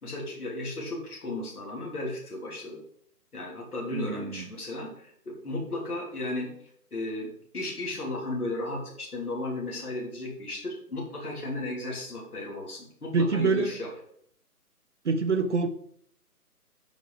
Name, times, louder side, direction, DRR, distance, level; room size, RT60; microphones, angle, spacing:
voice 1, 0.0-2.8 3.3-6.5 6.9-13.9, left 2 dB, 70° left, -2 dB, 3.4 m, -35 dB
voice 2, 3.9-4.4 13.1-13.8 15.0-15.7, right 4 dB, 50° right, 8 dB, 0.8 m, -26 dB
9.2 x 6.4 x 4.9 m, 0.66 s
figure-of-eight pair, 145°, 46 cm